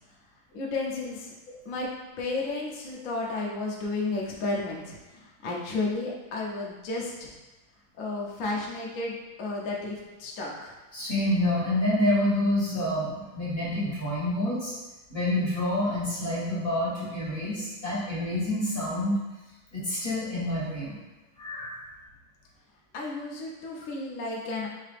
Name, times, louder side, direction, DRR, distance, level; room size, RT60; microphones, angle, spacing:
voice 1, 0.5-1.3 1.6-1.9 2.2-7.3 8.0-10.8 22.9-24.7, left 3 dB, 60° left, -3 dB, 0.9 m, -32 dB
voice 2, 10.9-14.7 15.1-19.1 19.7-21.0 21.4-21.7, left 1 dB, 20° left, -10 dB, 1.4 m, -27 dB
4.9 x 2.8 x 3.3 m, 1.1 s
omnidirectional pair, 2.2 m